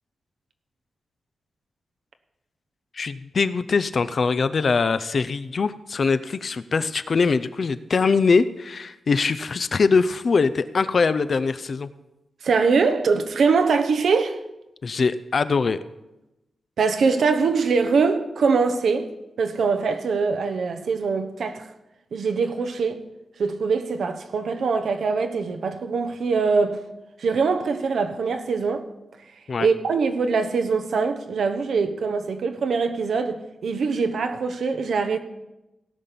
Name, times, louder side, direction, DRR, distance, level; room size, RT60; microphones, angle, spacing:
voice 1, 2.9-11.9 14.8-15.8 29.5-29.7, left 4 dB, 45° left, 0.5 m, -22 dB
voice 2, 12.4-14.4 16.8-19.1 19.4-21.7 22.1-23.0 23.4-26.8 27.2-28.9 29.6-35.2, right 4 dB, 75° right, 1.0 m, -23 dB
17.5 x 5.8 x 6.9 m
wide cardioid pair, 155°, 0 cm